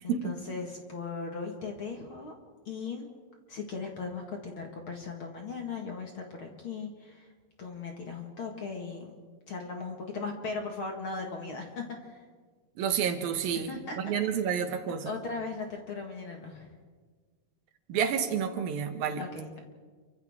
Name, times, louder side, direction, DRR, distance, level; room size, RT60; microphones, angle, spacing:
voice 1, 0.0-2.3 2.7-3.1 3.5-7.3 7.6-9.2 9.5-12.3 13.6-14.0 14.4-14.6 14.9-16.7 19.2-19.6, left 4 dB, 45° left, 2 dB, 2.0 m, -38 dB
voice 2, 12.8-13.7 14.0-15.1 17.9-19.2, right 7 dB, 85° right, 6 dB, 3.2 m, -29 dB
29.0 x 24.5 x 3.6 m, 1.5 s
omnidirectional pair, 4.0 m